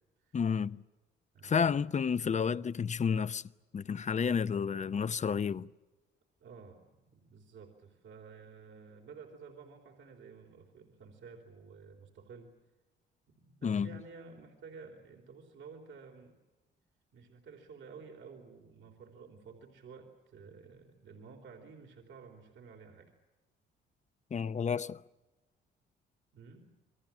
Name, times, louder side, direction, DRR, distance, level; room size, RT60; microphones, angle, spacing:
voice 1, 0.3-0.8 1.4-3.4 3.7-5.7 13.6-14.0 24.3-25.0, left 6 dB, 35° left, 0.8 m, -31 dB
voice 2, 1.3-1.7 3.8-4.0 6.4-12.5 13.3-16.4 17.1-23.1 26.3-26.7, right 5 dB, 70° right, 4.0 m, -52 dB
29.0 x 22.5 x 7.4 m
cardioid pair, 90°, 20 cm